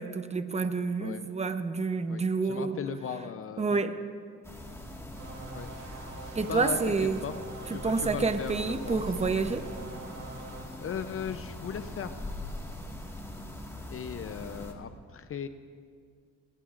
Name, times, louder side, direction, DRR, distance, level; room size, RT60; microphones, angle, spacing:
voice 1, 0.0-2.8 3.6-4.0 6.3-7.2 7.7-9.6, right 4 dB, 20° right, 9 dB, 0.9 m, -28 dB
voice 2, 2.1-3.8 5.5-5.7 6.5-6.9 7.2-7.4 7.7-9.0 10.8-12.1 13.9-15.5, left 7 dB, 45° left, 10 dB, 0.7 m, -37 dB
sound 1, 4.4-14.7, left 1 dB, 10° left, 1.8 m, -42 dB
sound 2, 5.1-10.7, right 4 dB, 85° right, 2.9 m, -45 dB
20.5 x 19.0 x 2.5 m, 2.1 s
cardioid pair, 90°, 30 cm